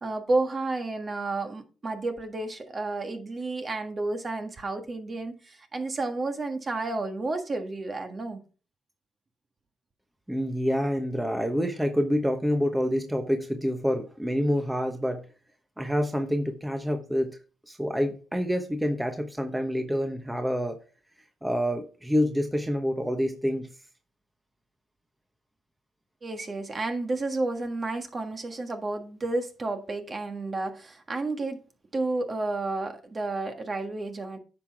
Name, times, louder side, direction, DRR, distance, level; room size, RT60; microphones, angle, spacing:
voice 1, 0.0-8.4 26.2-31.6 31.9-34.4, right 2 dB, 35° right, 1.5 m, -31 dB
voice 2, 10.3-15.3 15.8-17.4 17.7-20.8 21.4-23.7, equal, 5° right, 1.0 m, -27 dB
9.7 x 5.9 x 3.5 m
cardioid pair, 90°, 0 cm